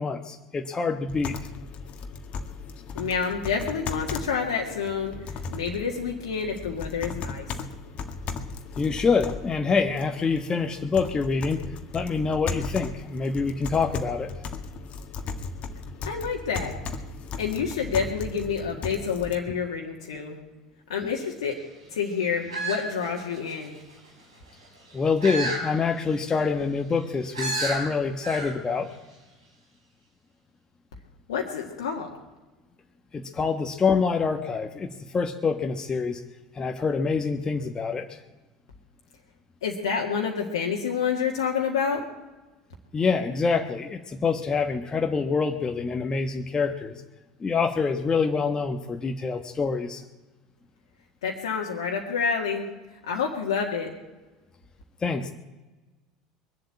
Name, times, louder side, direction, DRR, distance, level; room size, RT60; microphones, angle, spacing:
voice 1, 0.0-1.4 8.8-11.6 11.9-14.3 24.9-28.9 33.1-36.2 36.5-38.2 42.9-46.9 47.4-50.0 55.0-55.3, left 5 dB, 25° left, 5 dB, 1.1 m, -26 dB
sound 1, 1.1-19.3, left 4 dB, 45° left, 1.6 m, -37 dB
voice 2, 2.9-5.1 5.5-7.5 16.0-16.8 17.4-20.4 20.9-21.6 21.9-23.7 31.3-32.2 39.6-42.0 51.2-52.7 53.1-53.9, left 6 dB, 75° left, 0 dB, 1.8 m, -28 dB
sound 2, 22.5-23.7 25.2-25.7 26.1-26.2 27.3-27.8 28.2-28.5 28.8-28.9, right 2 dB, 85° right, 3.8 m, -30 dB
22.0 x 7.8 x 8.5 m, 1.2 s
hypercardioid pair, 70°, 3 cm